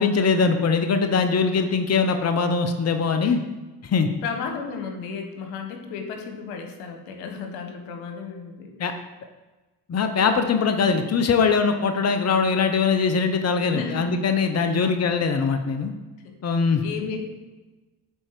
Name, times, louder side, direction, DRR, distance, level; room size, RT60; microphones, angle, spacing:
voice 1, 0.0-3.4 3.8-4.1 8.8-8.9 9.9-15.9 16.4-16.8, left 5 dB, 30° left, 7 dB, 0.9 m, -22 dB
voice 2, 4.2-9.0 13.6-14.1 14.6-14.9 16.2-16.4 16.8-17.2, left 5 dB, 80° left, 5 dB, 1.3 m, -34 dB
10.0 x 4.4 x 4.6 m, 1.2 s
hypercardioid pair, 50°, 48 cm